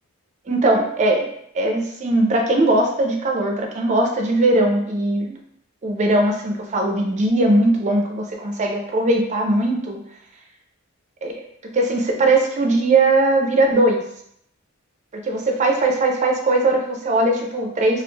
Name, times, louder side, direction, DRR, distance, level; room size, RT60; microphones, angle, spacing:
voice 1, 0.5-1.3 1.5-5.4 5.8-10.0 11.2-14.0 15.2-18.0, right 2 dB, 30° right, 2 dB, 0.4 m, -19 dB
2.4 x 2.1 x 3.1 m, 0.71 s
head